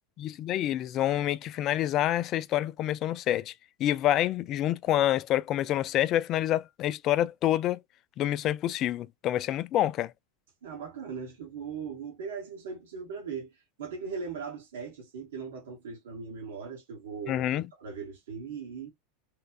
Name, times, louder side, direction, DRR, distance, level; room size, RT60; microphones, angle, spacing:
voice 1, 0.2-3.5 3.8-7.8 8.2-10.1 17.3-17.7, left 12 dB, 45° left, 0.3 m, -27 dB
voice 2, 10.6-18.9, right 5 dB, 75° right, 1.1 m, -39 dB
3.0 x 2.3 x 2.3 m
hypercardioid pair, 90°, 0 cm